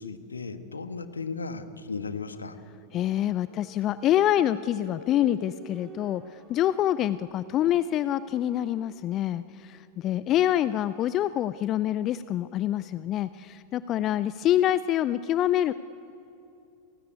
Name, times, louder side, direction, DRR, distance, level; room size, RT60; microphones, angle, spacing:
voice 1, 0.0-2.6, left 4 dB, 75° left, 9 dB, 1.6 m, -36 dB
sound 1, 2.5-14.0, right 2 dB, 25° right, 5.6 m, -51 dB
voice 2, 2.9-15.7, left 12 dB, 35° left, 16 dB, 0.5 m, -26 dB
29.5 x 17.5 x 9.7 m, 2.7 s
figure-of-eight pair, 90°, 0 cm